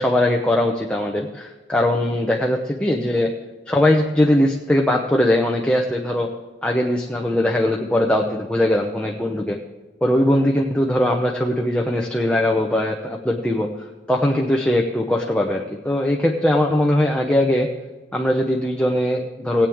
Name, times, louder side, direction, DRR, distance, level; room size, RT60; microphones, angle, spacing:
voice 1, 0.0-3.3 3.7-6.3 6.6-9.6 10.0-13.7 14.1-17.7 18.1-19.7, left 1 dB, 5° left, 0 dB, 0.8 m, -20 dB
17.5 x 8.7 x 3.6 m, 1.2 s
head